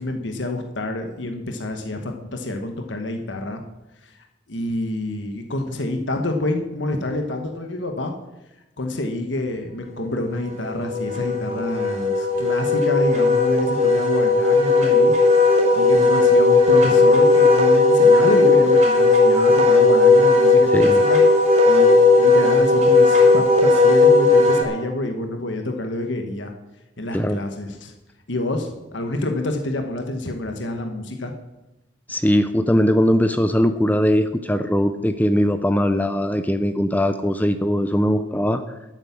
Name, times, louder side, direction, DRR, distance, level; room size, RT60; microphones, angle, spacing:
voice 1, 0.0-3.6 4.0-8.1 8.8-15.1 15.4-26.5 27.0-27.9 28.3-31.3, left 2 dB, 70° left, 4 dB, 1.3 m, -27 dB
Wind instrument woodwind instrument, 10.3-24.6, left 3 dB, 40° right, 3.4 m, -15 dB
voice 2, 32.1-38.6, equal, 10° left, 9 dB, 0.6 m, -20 dB
12.0 x 9.0 x 7.3 m, 0.97 s
head